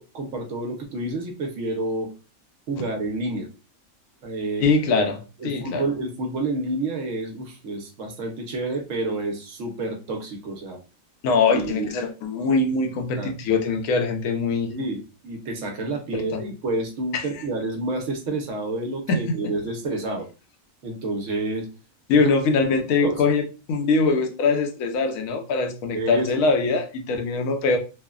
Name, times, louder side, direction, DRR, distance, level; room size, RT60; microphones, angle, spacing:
voice 1, 0.0-2.1 2.7-3.5 4.2-4.7 5.4-10.8 11.5-11.9 13.2-13.3 14.7-20.3 20.8-21.7 22.1-22.3 23.0-23.2 25.9-26.3, right 2 dB, 70° right, 3 dB, 1.0 m, -29 dB
voice 2, 4.6-5.8 11.2-14.7 16.1-16.4 17.1-17.2 19.1-19.4 22.1-27.8, left 4 dB, 80° left, 4 dB, 1.0 m, -22 dB
3.0 x 2.1 x 2.3 m, 0.32 s
omnidirectional pair, 1.4 m